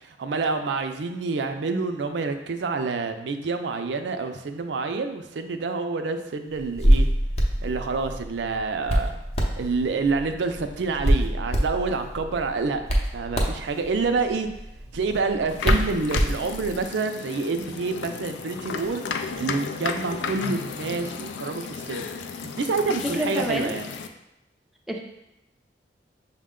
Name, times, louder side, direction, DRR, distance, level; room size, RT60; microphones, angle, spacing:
voice 1, 0.0-7.1 7.6-9.1 9.6-12.8 13.1-14.5 14.9-22.1 22.4-23.9, right 4 dB, 75° right, 7 dB, 0.4 m, -28 dB
Hands, 6.6-16.8, equal, 35° left, 0.6 m, -26 dB
sound 1, 15.5-24.1, left 5 dB, 80° left, 0.3 m, -33 dB
voice 2, 23.1-23.7 24.9-25.0, right 1 dB, ahead, 0 dB, 0.4 m, -27 dB
5.9 x 2.1 x 3.6 m, 0.89 s
head